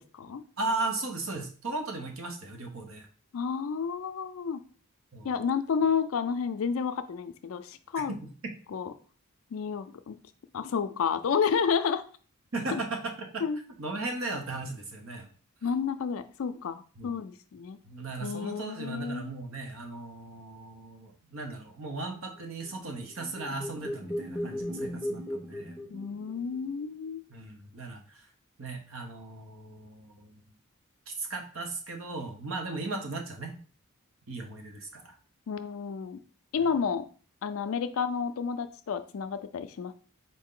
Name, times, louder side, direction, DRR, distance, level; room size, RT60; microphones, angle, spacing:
voice 1, 0.6-3.1 5.1-5.4 7.9-8.2 12.5-13.4 13.8-15.3 17.0-17.1 17.8-25.8 27.3-28.3 28.6-30.4 31.1-33.6 34.3-35.2 36.6-36.7, right 3 dB, 65° right, 3 dB, 0.9 m, -37 dB
voice 2, 3.3-4.6 5.2-8.2 8.7-8.9 9.5-10.2 10.5-12.0 12.7-12.8 13.4-13.6 15.6-17.8 18.2-19.2 25.9-27.2 35.5-36.2 36.5-37.1 37.4-39.9, left 6 dB, 70° left, 11 dB, 0.4 m, -30 dB
sound 1, 22.6-26.7, equal, 5° right, 0.8 m, -37 dB
4.4 x 2.6 x 3.7 m, 0.41 s
head